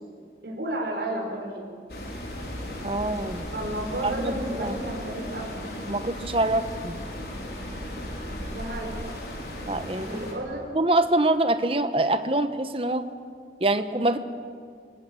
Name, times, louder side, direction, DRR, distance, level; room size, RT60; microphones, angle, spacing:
voice 1, 0.4-1.7 3.5-5.5 8.5-9.1 10.0-10.6, right 1 dB, 70° right, -2 dB, 5.1 m, -32 dB
sound 1, 1.9-10.3, equal, 65° left, 4.6 m, -36 dB
voice 2, 2.8-3.4 4.0-4.3 4.6-4.7 5.9-7.0 9.7-10.2 10.7-13.1 13.6-14.2, right 2 dB, 30° right, 10 dB, 1.1 m, -24 dB
26.0 x 22.0 x 7.2 m, 2.1 s
head